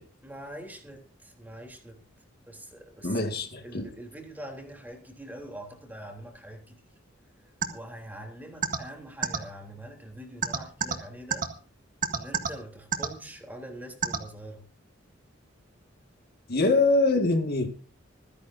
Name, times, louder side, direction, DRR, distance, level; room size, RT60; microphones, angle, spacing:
voice 1, 0.2-2.0 2.4-3.2 3.6-6.8 7.4-11.4 12.1-14.6, right 1 dB, 10° right, 3.3 m, -44 dB
voice 2, 3.0-3.9 16.5-17.7, left 3 dB, 55° left, 1.9 m, -24 dB
sound 1, 7.6-7.7 8.6-8.8 9.2-9.4 10.4-10.9 11.3-11.4 12.0-12.5 12.9-13.1 14.0-14.2, right 7 dB, 45° right, 1.9 m, -25 dB
25.5 x 10.5 x 2.7 m
head